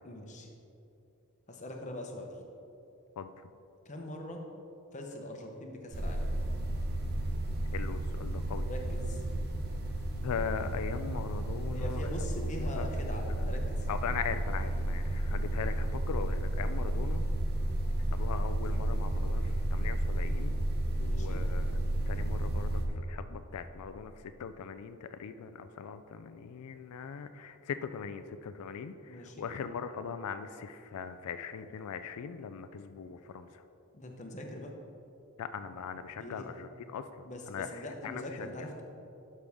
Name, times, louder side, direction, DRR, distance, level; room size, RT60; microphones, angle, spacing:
voice 1, 0.0-0.5 1.5-2.3 3.8-4.4 4.9-6.3 8.7-9.2 11.7-13.9 21.0-21.4 29.0-29.5 33.9-34.7 36.2-36.5 37.2-38.8, left 1 dB, 35° left, 2 dB, 0.9 m, -42 dB
sound 1, 5.9-22.9, right 1 dB, 45° right, 0.9 m, -32 dB
voice 2, 7.7-8.7 10.2-12.0 12.4-12.9 13.2-13.4 13.9-17.2 18.1-19.4 19.7-20.6 21.0-21.8 22.1-24.1 24.4-33.5 35.4-37.0 37.5-37.7 38.0-38.2, left 6 dB, 85° left, 10 dB, 0.4 m, -40 dB
11.5 x 5.5 x 3.6 m, 2.8 s
head